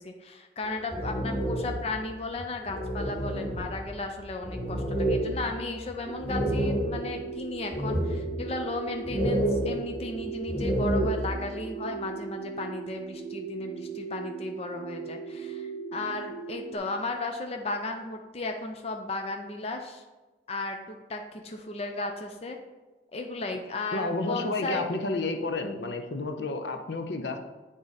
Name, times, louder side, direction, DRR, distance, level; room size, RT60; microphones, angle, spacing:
voice 1, 0.0-20.0 20.5-22.6 23.1-24.9, left 2 dB, 35° left, 4 dB, 0.5 m, -35 dB
sound 1, 0.6-2.0 2.4-2.5 2.7-7.2 7.7-8.5 9.0-11.3, right 1 dB, 55° left, 2.0 m, -29 dB
sound 2, 6.0-16.8, right 6 dB, 45° right, 1.0 m, -39 dB
voice 2, 23.9-27.4, left 2 dB, 75° left, 6 dB, 0.6 m, -31 dB
8.3 x 3.8 x 4.0 m, 1.2 s
head